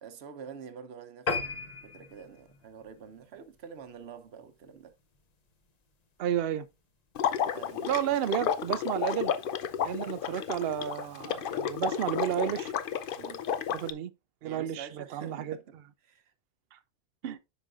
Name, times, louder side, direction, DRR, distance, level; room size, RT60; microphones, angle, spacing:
voice 1, 0.0-4.9 7.5-8.0 8.7-8.8 13.2-13.8 14.4-15.8 16.0-16.3, right 7 dB, 55° right, 0.9 m, -47 dB
sound 1, 1.3-4.0 4.5-4.7 5.1-5.2 5.5-5.6 5.9-6.0, left 4 dB, 40° left, 0.6 m, -36 dB
voice 2, 6.2-6.7 7.9-9.3 9.8-12.7 13.7-14.1 14.4-15.6 16.7-16.8 17.2-17.4, right 10 dB, 80° right, 0.5 m, -31 dB
Water / Liquid, 7.1-13.9, left 8 dB, 90° left, 0.4 m, -32 dB
10.0 x 5.0 x 2.4 m
omnidirectional pair, 1.6 m